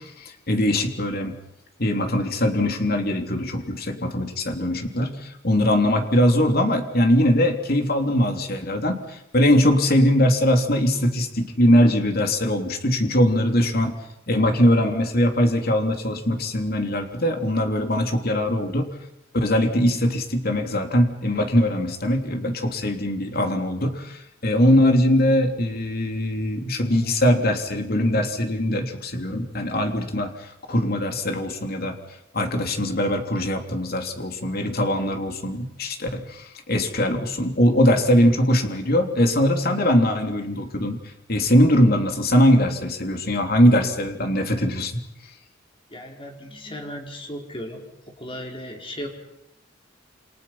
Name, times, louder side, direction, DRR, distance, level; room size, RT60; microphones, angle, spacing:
voice 1, 0.0-1.4 1.8-13.9 14.3-18.9 19.3-32.0 32.3-41.0 41.3-45.0, equal, 50° left, 4 dB, 3.3 m, -21 dB
voice 2, 45.9-47.9 48.2-49.1, equal, 30° left, 2 dB, 4.9 m, -36 dB
29.0 x 26.5 x 5.8 m, 0.84 s
head